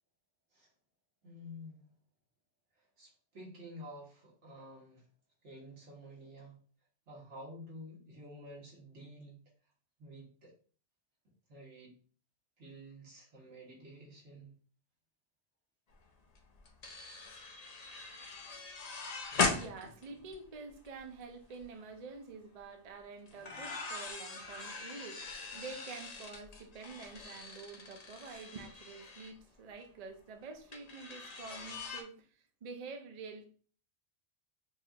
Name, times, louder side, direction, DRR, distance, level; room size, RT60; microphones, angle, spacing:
voice 1, 1.2-1.8 2.8-5.0 5.4-6.6 7.1-9.4 10.0-10.5 11.5-12.0 12.6-14.5, equal, 85° right, 1.9 m, -50 dB
sound 1, 16.0-16.1 16.3-21.0 21.4-21.6 23.3-29.3 30.7-32.0, left 4 dB, 45° left, 0.6 m, -40 dB
voice 2, 19.6-33.5, right 4 dB, 45° right, 0.6 m, -48 dB
5.4 x 2.4 x 2.8 m
omnidirectional pair, 1.2 m